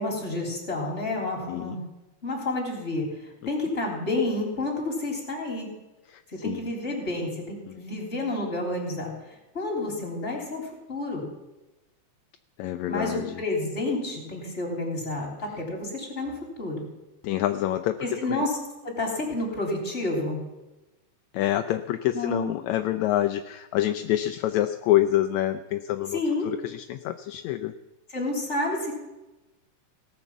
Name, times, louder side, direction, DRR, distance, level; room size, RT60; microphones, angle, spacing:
voice 1, 0.0-1.9 2.2-5.7 6.3-9.1 9.5-11.3 12.9-16.8 18.0-18.6 18.8-20.4 22.1-22.5 26.1-26.5 28.1-28.9, left 2 dB, 25° left, -1 dB, 3.4 m, -30 dB
voice 2, 1.5-1.8 6.1-6.7 7.7-7.8 12.6-13.4 17.2-18.4 21.3-27.8, left 13 dB, 80° left, 8 dB, 1.8 m, -27 dB
18.0 x 6.8 x 7.1 m, 1.0 s
omnidirectional pair, 3.4 m